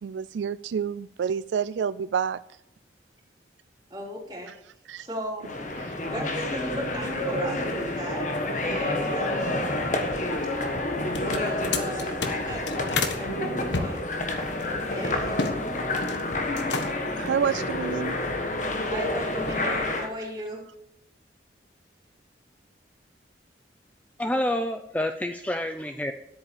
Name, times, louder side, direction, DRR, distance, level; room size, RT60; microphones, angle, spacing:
voice 1, 0.0-2.4 4.9-5.1 5.8-5.9 17.2-18.2, right 7 dB, 75° right, 16 dB, 0.3 m, -28 dB
voice 2, 3.9-4.5 5.0-5.6 6.0-9.4 11.2-14.1 14.9-15.6 18.9-20.6, equal, 20° right, -3 dB, 3.7 m, -37 dB
sound 1, 5.4-20.1, left 1 dB, 40° left, 1.3 m, -29 dB
sound 2, 11.1-13.2 13.7-15.6 15.8-16.2 16.5-17.1, left 4 dB, 70° left, 1.3 m, -31 dB
voice 3, 24.2-26.1, left 1 dB, 10° left, 7 dB, 0.5 m, -28 dB
10.5 x 8.7 x 6.8 m, 0.80 s
head